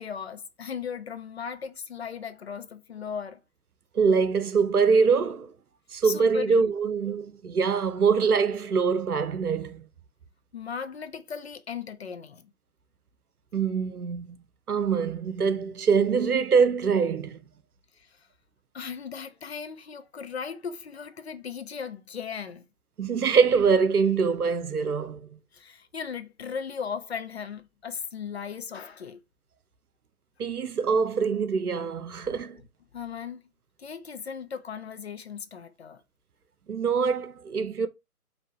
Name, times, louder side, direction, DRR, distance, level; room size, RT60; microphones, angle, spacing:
voice 1, 0.0-3.4 6.0-6.7 10.5-12.5 17.9-18.3 18.7-22.6 25.5-29.2 32.9-33.5 33.8-36.0, left 6 dB, 45° left, 0.5 m, -37 dB
voice 2, 3.9-5.5 5.9-9.8 13.5-14.4 14.7-17.4 23.0-25.2 30.4-32.6 36.7-37.9, right 5 dB, 80° right, 0.7 m, -24 dB
4.5 x 2.8 x 2.7 m
figure-of-eight pair, 135°, 44 cm